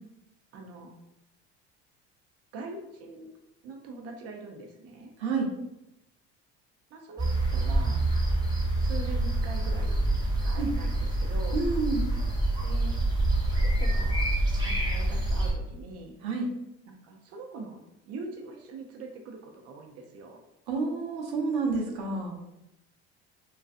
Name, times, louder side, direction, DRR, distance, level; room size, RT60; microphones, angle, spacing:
voice 1, 0.5-0.9 2.5-3.3 3.6-5.1 6.9-8.0 8.8-9.9 10.3-11.6 12.6-13.0 13.5-14.4 14.6-16.1 16.9-20.4, right 3 dB, 45° right, 2 dB, 0.5 m, -43 dB
sound 1, 7.2-15.5, right 2 dB, 15° right, 0.8 m, -26 dB
voice 2, 11.5-12.1 16.2-16.5 20.7-22.4, right 4 dB, 85° right, -1 dB, 0.7 m, -29 dB
2.4 x 2.2 x 2.4 m, 0.88 s
supercardioid pair, 85°, 33 cm